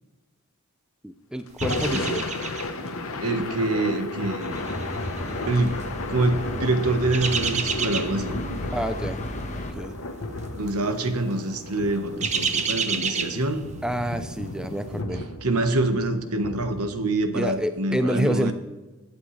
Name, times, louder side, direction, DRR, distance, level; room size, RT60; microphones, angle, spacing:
voice 1, 1.0-2.2 8.7-9.2 9.5-10.0 13.8-15.2 17.3-18.5, equal, 5° right, 9 dB, 0.4 m, -28 dB
Thunder / Rain, 1.5-17.7, left 2 dB, 75° left, 1.1 m, -34 dB
sound 1, 1.6-2.9 3.2-3.5 4.2-5.8 6.8-8.3 8.7-9.0 9.3-9.4 10.4-10.8 11.1-11.2 11.7-14.0 14.4-14.5, right 6 dB, 30° right, 0.7 m, -30 dB
voice 2, 1.7-2.1 3.2-4.6 5.5-5.8 6.1-8.4 10.5-13.6 15.4-18.5, right 2 dB, 90° right, 8 dB, 1.3 m, -25 dB
sound 2, 4.5-9.7, left 1 dB, 30° left, 1.2 m, -34 dB
21.5 x 8.6 x 3.3 m, 1.2 s
head